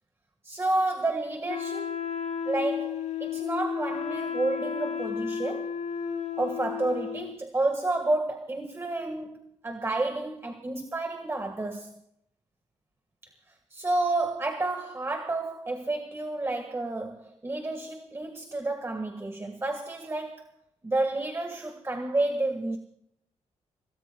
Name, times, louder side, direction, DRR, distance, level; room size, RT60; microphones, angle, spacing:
voice 1, 0.4-2.0 2.4-5.8 6.4-9.4 9.6-12.0 13.7-20.5 20.8-22.8, right 2 dB, 20° right, 5 dB, 1.6 m, -30 dB
Wind instrument woodwind instrument, 1.5-7.4, left 7 dB, 65° left, 1.1 m, -33 dB
25.5 x 19.0 x 2.3 m, 0.71 s
wide cardioid pair, 125°, 12 cm